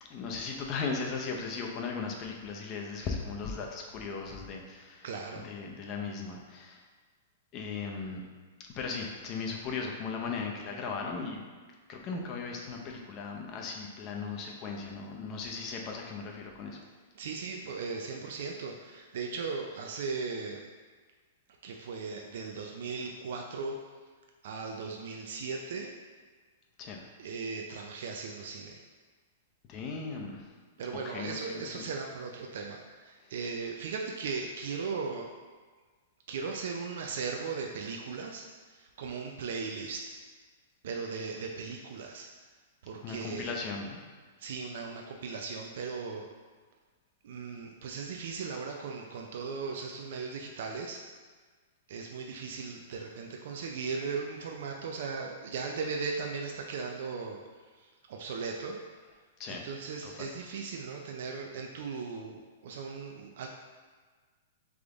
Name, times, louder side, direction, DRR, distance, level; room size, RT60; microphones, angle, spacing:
voice 1, 0.1-5.0 5.3-6.8 7.5-8.2 8.7-11.4 11.9-16.8 26.8-27.0 29.7-30.5 31.0-31.9 43.0-44.0 59.4-59.7 60.0-60.3, left 4 dB, 30° left, 0 dB, 0.6 m, -37 dB
voice 2, 5.0-5.5 17.2-20.6 21.6-23.8 24.4-25.9 27.2-28.8 30.8-35.3 36.3-40.0 40.8-42.3 42.8-43.6 44.4-46.3 47.2-51.0 51.9-57.4 57.8-58.8 59.5-63.5, right 4 dB, 60° right, 1 dB, 0.4 m, -37 dB
3.5 x 3.5 x 3.8 m, 1.4 s
hypercardioid pair, 160°, 0 cm